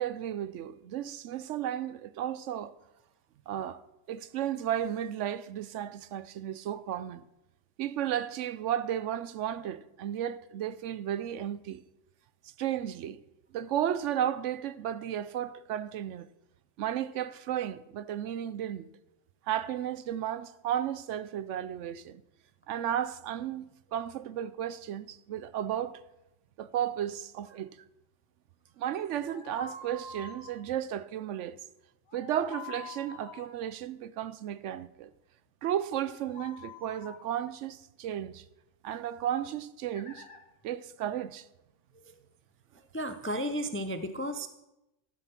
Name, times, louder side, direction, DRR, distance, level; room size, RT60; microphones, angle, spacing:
voice 1, 0.0-2.7 3.5-3.8 4.1-7.2 7.8-11.8 12.6-13.2 13.5-16.3 16.8-18.9 19.5-22.2 22.7-26.0 26.6-27.7 28.8-31.6 32.1-35.1 35.6-38.4 38.8-40.3 40.6-41.5, right 10 dB, 70° right, 0.9 m, -34 dB
sound 1, 29.3-30.5 32.1-33.5 35.9-37.2 39.9-40.4, left 4 dB, 80° left, 1.8 m, -46 dB
voice 2, 42.9-44.5, equal, 20° left, 0.3 m, -33 dB
13.5 x 7.6 x 5.9 m
omnidirectional pair, 1.3 m